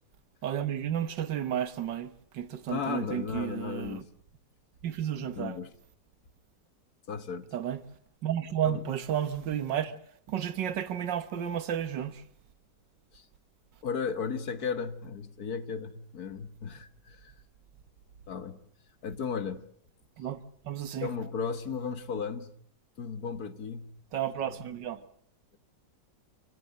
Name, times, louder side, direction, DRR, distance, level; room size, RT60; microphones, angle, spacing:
voice 1, 0.4-4.0 4.8-5.6 7.5-7.8 8.2-10.0 10.3-12.2 20.2-21.1 24.1-25.0, right 10 dB, 85° right, 1.9 m, -32 dB
voice 2, 2.7-4.1 5.4-5.7 7.1-7.5 8.6-8.8 13.1-13.3 13.8-17.4 18.3-18.6 19.0-19.6 21.0-22.5 23.0-23.9 24.6-24.7, left 6 dB, 60° left, 1.8 m, -35 dB
26.5 x 17.5 x 7.8 m
omnidirectional pair, 1.9 m